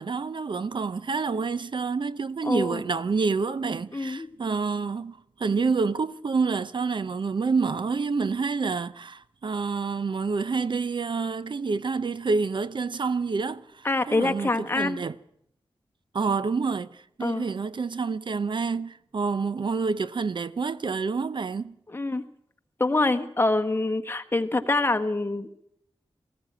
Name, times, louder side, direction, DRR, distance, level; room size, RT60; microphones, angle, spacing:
voice 1, 0.0-15.1 16.1-21.8, right 4 dB, 55° right, 0.7 m, -28 dB
voice 2, 2.4-2.8 3.9-4.3 13.8-15.0 17.2-17.5 21.9-22.2 22.8-25.6, left 2 dB, 25° left, 1.4 m, -25 dB
20.0 x 15.0 x 8.7 m
wide cardioid pair, 110°, 9 cm